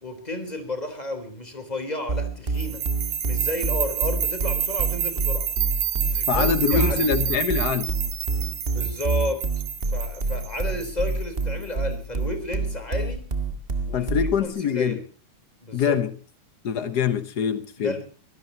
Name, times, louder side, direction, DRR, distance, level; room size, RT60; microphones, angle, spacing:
voice 1, 0.0-2.8 3.2-5.5 6.0-7.1 8.7-9.4 9.9-13.3 13.9-15.0 15.6-16.0 17.8-18.0, left 1 dB, 15° left, 3.8 m, -32 dB
sound 1, 2.1-14.5, right 3 dB, 25° right, 1.5 m, -27 dB
sound 2, 2.6-11.6, right 9 dB, 75° right, 2.4 m, -29 dB
voice 2, 6.3-7.9 13.9-15.0 15.7-16.1 16.6-18.0, left 7 dB, 80° left, 0.9 m, -24 dB
24.5 x 17.5 x 2.9 m
omnidirectional pair, 3.4 m